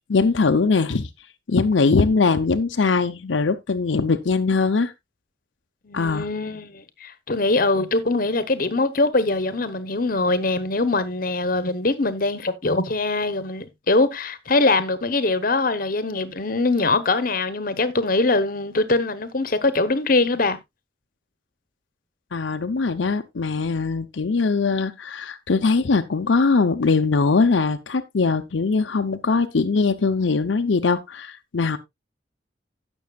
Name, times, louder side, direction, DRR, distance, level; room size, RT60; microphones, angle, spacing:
voice 1, 0.1-1.1 1.5-4.9 5.9-6.3 22.3-31.8, left 4 dB, 85° left, 0.7 m, -21 dB
voice 2, 5.8-20.6, left 2 dB, 50° left, 0.9 m, -22 dB
16.0 x 6.2 x 2.3 m
head